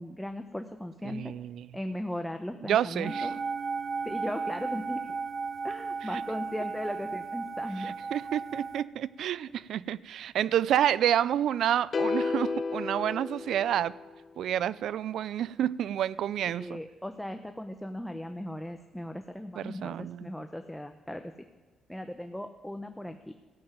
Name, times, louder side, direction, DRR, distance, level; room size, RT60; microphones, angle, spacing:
voice 1, 0.0-1.4 1.7-3.4 4.0-5.2 5.6-7.9 9.5-9.6 16.5-21.3 21.9-23.3, left 1 dB, 5° left, 0.8 m, -37 dB
voice 2, 1.0-1.7 2.6-3.3 7.8-13.9 14.4-16.8 19.6-20.3, right 10 dB, 70° right, 0.4 m, -29 dB
sound 1, 3.0-8.8, right 5 dB, 40° right, 1.0 m, -35 dB
sound 2, 11.9-14.2, left 4 dB, 40° left, 0.6 m, -32 dB
15.0 x 7.8 x 9.2 m
cardioid pair, 90°, 0 cm